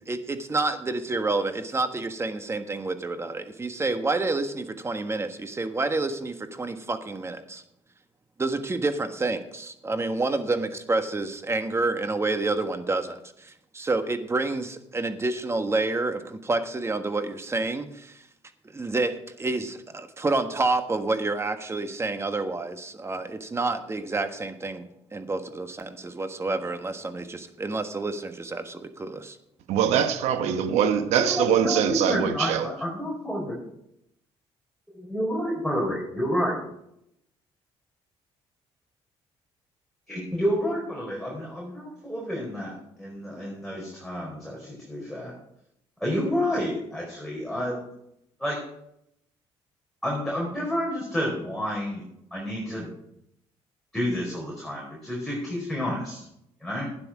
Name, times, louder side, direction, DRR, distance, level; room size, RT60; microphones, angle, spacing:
voice 1, 0.1-7.6 8.4-18.3 18.6-24.8 25.1-29.4, right 3 dB, 25° right, 1.5 m, -29 dB
voice 2, 29.7-32.7, right 8 dB, 85° right, 1.0 m, -23 dB
voice 3, 31.3-33.6 34.9-36.6 40.1-45.3 46.0-47.8 48.4-48.6 50.0-52.0 52.3-52.9 53.9-56.3 56.6-56.9, equal, ahead, 4.6 m, -29 dB
12.0 x 9.8 x 4.9 m
cardioid pair, 85°, 11 cm